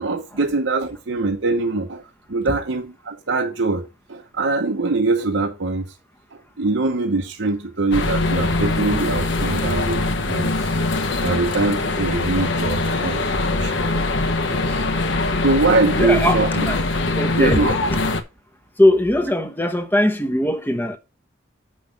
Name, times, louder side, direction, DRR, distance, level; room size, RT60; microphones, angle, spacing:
voice 1, 0.0-2.0 2.3-3.8 4.1-5.9 6.6-10.8 11.2-13.7 14.5-14.9 15.4-16.6 17.4-17.8, right 3 dB, 65° right, 0.9 m, -23 dB
sound 1, 7.9-18.2, left 2 dB, 65° left, 1.1 m, -22 dB
voice 2, 16.0-16.8 17.1-18.0 18.8-21.0, left 1 dB, 10° left, 1.0 m, -20 dB
7.3 x 5.8 x 5.1 m
head